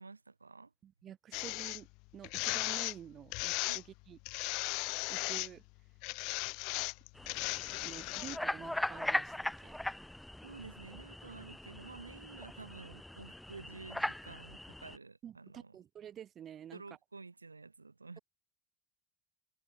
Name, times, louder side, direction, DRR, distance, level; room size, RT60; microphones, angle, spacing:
voice 1, 0.0-0.7 3.7-3.8 10.4-15.8 16.7-18.2, right 3 dB, 85° right, 1.8 m, -51 dB
voice 2, 0.8-1.9 2.1-4.2 5.1-5.6 7.8-9.8 15.2-16.8, right 10 dB, 40° right, 1.5 m, -49 dB
sound 1, 1.3-1.8 2.2-2.9 3.3-3.8 4.2-5.5 6.0-8.4, left 29 dB, 55° left, 1.0 m, -36 dB
sound 2, 7.1-15.0, left 1 dB, 5° left, 0.9 m, -40 dB
figure-of-eight pair, 70°, 0 cm